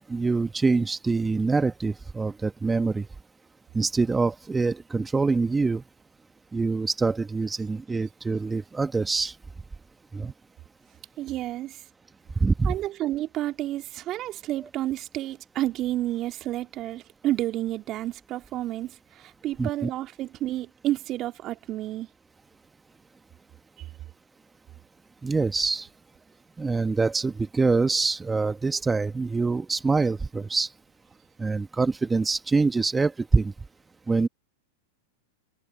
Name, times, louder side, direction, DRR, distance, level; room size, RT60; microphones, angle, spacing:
voice 1, 0.1-3.1 3.7-5.8 6.5-9.4 10.1-10.3 12.4-12.7 19.6-19.9 25.2-25.9 26.6-30.7 31.4-33.5 34.1-34.3, right 4 dB, 15° right, 1.3 m, -25 dB
voice 2, 11.2-11.8 12.6-22.1 23.8-23.9, right 14 dB, 40° right, 2.3 m, -30 dB
hypercardioid pair, 95°, 0 cm